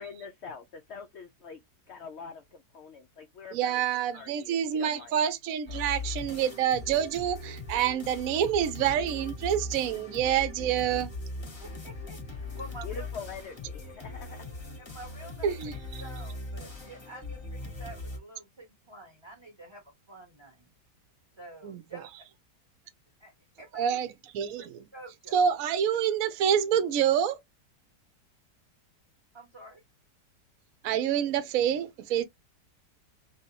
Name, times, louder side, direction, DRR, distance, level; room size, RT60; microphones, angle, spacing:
voice 1, 0.0-1.6 1.9-3.8 4.1-5.1 12.8-14.5, left 5 dB, 80° left, 0.6 m, -44 dB
voice 2, 3.5-11.1 15.4-16.0 21.6-22.0 23.7-24.9 25.3-27.4 30.8-32.2, right 9 dB, 65° right, 0.9 m, -27 dB
sound 1, 5.7-18.2, left 2 dB, 25° left, 0.7 m, -40 dB
voice 3, 11.6-13.1 14.9-15.7 16.0-20.7 21.4-22.1 23.2-23.3 23.6-23.8 24.6-24.7 24.9-25.4 29.3-29.8, right 2 dB, 20° right, 0.8 m, -48 dB
3.4 x 2.8 x 2.8 m
omnidirectional pair, 1.9 m